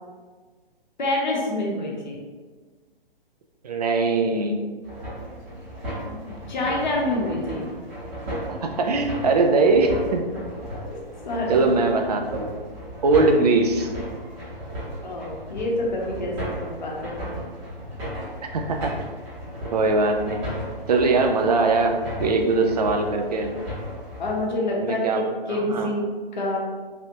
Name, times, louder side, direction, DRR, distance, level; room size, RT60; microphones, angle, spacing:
voice 1, 1.0-2.2 6.0-7.7 10.8-11.0 11.2-11.6 15.0-17.3 24.2-26.0 26.3-26.6, left 1 dB, 50° left, -2 dB, 0.8 m, -27 dB
voice 2, 3.6-4.6 8.6-10.3 11.5-12.6 13.0-13.9 18.4-18.9 19.7-20.4 20.9-23.5 24.8-25.2 25.5-25.9, right 3 dB, 45° right, 3 dB, 0.4 m, -21 dB
sound 1, 4.8-24.5, equal, 20° right, 0.9 m, -35 dB
3.4 x 2.4 x 2.9 m, 1.4 s
figure-of-eight pair, 130°, 30 cm